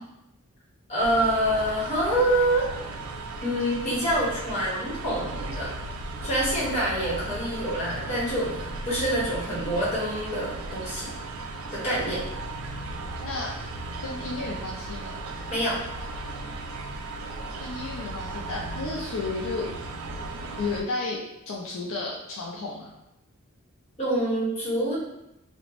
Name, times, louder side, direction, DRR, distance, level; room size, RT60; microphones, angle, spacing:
voice 1, 0.9-2.6 3.4-5.7 6.2-11.1 11.7-12.2 15.5-15.8 24.0-25.0, right 1 dB, 30° left, -8 dB, 1.0 m, -26 dB
sound 1, 1.0-20.8, right 2 dB, 70° right, 0.3 m, -36 dB
voice 2, 14.0-15.2 17.6-19.7 20.6-21.2 21.5-22.9, left 3 dB, 65° left, -3 dB, 0.4 m, -32 dB
2.8 x 2.1 x 2.9 m, 0.86 s
head